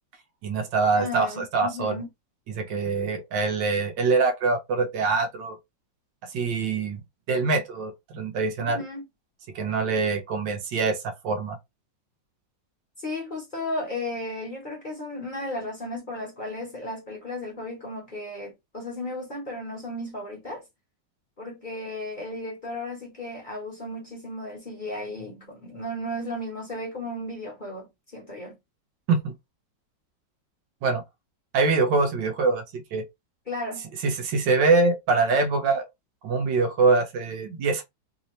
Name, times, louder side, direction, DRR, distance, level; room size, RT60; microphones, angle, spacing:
voice 1, 0.4-1.9 2.5-5.6 6.3-7.0 7.3-8.8 9.5-11.6 29.1-29.3 30.8-31.0 31.5-33.0 34.0-35.8 36.2-37.8, right 4 dB, 75° right, 1.4 m, -24 dB
voice 2, 0.9-2.1 8.6-9.1 13.0-20.6 21.4-28.5 33.5-33.8, left 1 dB, 30° left, 1.2 m, -34 dB
3.5 x 2.7 x 3.0 m
omnidirectional pair, 2.0 m